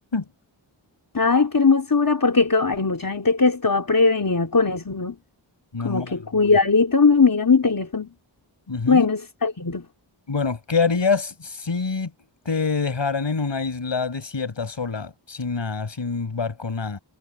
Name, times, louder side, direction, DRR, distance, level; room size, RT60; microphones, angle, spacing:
voice 1, 1.1-5.2 5.8-8.1 8.9-9.8, left 4 dB, 45° left, 3.4 m, -19 dB
voice 2, 5.7-6.3 8.7-9.1 10.3-12.1 12.5-17.0, left 4 dB, 65° left, 7.4 m, -26 dB
cardioid pair, 55°, 47 cm